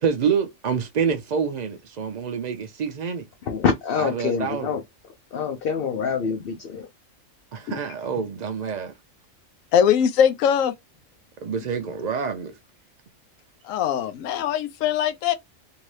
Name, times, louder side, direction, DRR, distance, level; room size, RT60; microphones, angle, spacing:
voice 1, 0.0-3.2 4.0-4.7 7.5-8.9 11.4-12.5, right 6 dB, 75° right, 0.4 m, -27 dB
voice 2, 3.4-4.8 5.3-6.9, left 6 dB, 55° left, 0.7 m, -25 dB
voice 3, 9.7-10.7 13.6-15.3, left 8 dB, 80° left, 1.0 m, -21 dB
2.9 x 2.7 x 3.1 m
omnidirectional pair, 1.4 m